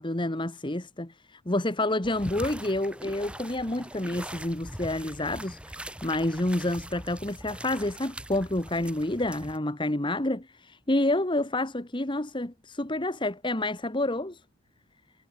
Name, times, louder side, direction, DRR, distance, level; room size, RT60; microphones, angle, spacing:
voice 1, 0.0-14.4, left 1 dB, 20° left, 1.3 m, -29 dB
sound 1, 2.0-9.6, right 1 dB, 5° right, 6.7 m, -42 dB
head